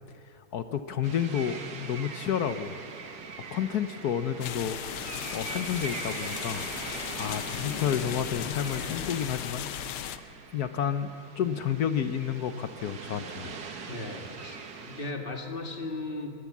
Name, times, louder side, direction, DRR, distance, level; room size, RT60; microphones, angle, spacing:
voice 1, 0.5-2.7 3.5-4.8 5.3-6.7 7.1-9.7 10.5-13.6, left 8 dB, 65° left, 10 dB, 1.0 m, -30 dB
sound 1, 1.0-15.1, right 5 dB, 50° right, 1.8 m, -42 dB
sound 2, 4.4-10.2, left 11 dB, 80° left, 1.6 m, -36 dB
voice 2, 13.9-16.3, left 2 dB, 25° left, 4 dB, 1.9 m, -37 dB
22.5 x 17.5 x 7.3 m, 2.5 s
omnidirectional pair, 2.3 m